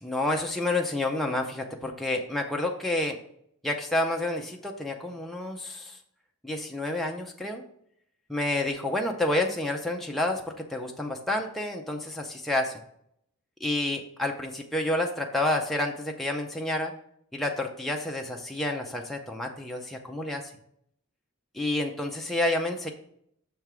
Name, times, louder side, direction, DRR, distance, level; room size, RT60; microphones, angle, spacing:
voice 1, 0.0-3.2 3.6-6.0 6.4-7.6 8.3-12.8 13.6-16.9 17.3-20.5 21.5-22.9, left 1 dB, ahead, 0 dB, 0.5 m, -29 dB
6.6 x 3.5 x 6.0 m, 0.70 s
head